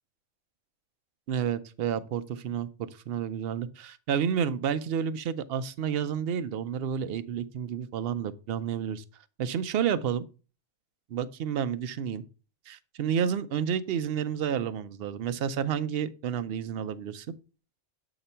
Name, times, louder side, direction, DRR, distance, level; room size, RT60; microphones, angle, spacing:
voice 1, 1.3-9.0 9.4-10.2 11.1-12.2 12.7-17.3, right 8 dB, 60° right, 0.7 m, -30 dB
7.7 x 2.9 x 5.4 m
omnidirectional pair, 1.3 m